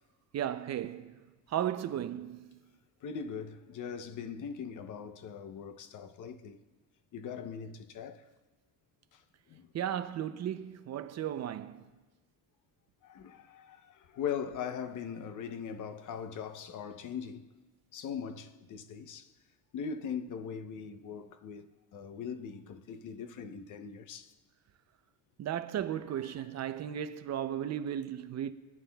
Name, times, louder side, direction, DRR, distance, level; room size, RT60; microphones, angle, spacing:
voice 1, 0.3-1.2 1.5-2.5 9.7-11.8 25.4-28.5, right 10 dB, 40° right, 0.6 m, -35 dB
voice 2, 3.0-6.6 7.1-8.3 9.1-9.2 9.5-9.7 13.0-17.5 17.9-19.3 19.7-24.3 26.3-26.5, left 7 dB, 50° left, 0.8 m, -40 dB
24.5 x 9.5 x 2.3 m
cardioid pair, 120°, 39 cm